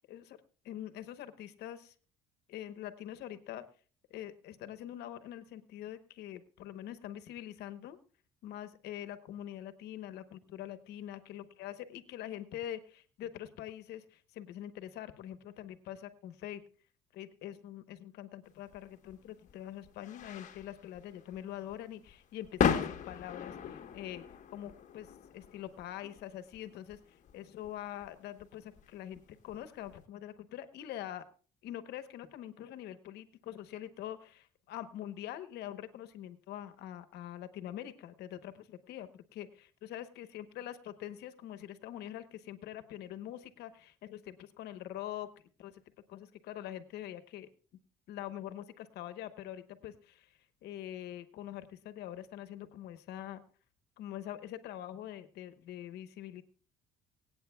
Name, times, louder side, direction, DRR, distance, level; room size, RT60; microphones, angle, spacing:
voice 1, 0.1-1.9 2.5-3.6 4.1-8.0 8.4-16.6 17.1-24.2 24.5-31.3 31.6-45.3 45.6-45.8 46.1-47.5 48.1-53.4 54.0-56.4, left 12 dB, 80° left, 11 dB, 1.0 m, -44 dB
sound 1, 18.7-30.0, left 7 dB, 50° left, 1.1 m, -38 dB
25.0 x 8.7 x 2.3 m, 0.41 s
cardioid pair, 110°, 17 cm